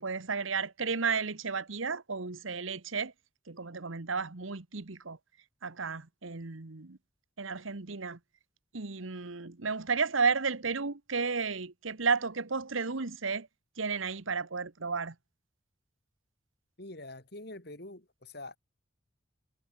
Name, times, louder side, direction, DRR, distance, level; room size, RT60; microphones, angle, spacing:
voice 1, 0.0-3.1 3.5-5.2 5.6-7.0 7.4-8.2 8.7-13.5 13.8-15.1, right 5 dB, 80° right, 1.3 m, -33 dB
voice 2, 16.8-18.6, left 2 dB, 55° left, 3.1 m, -45 dB
head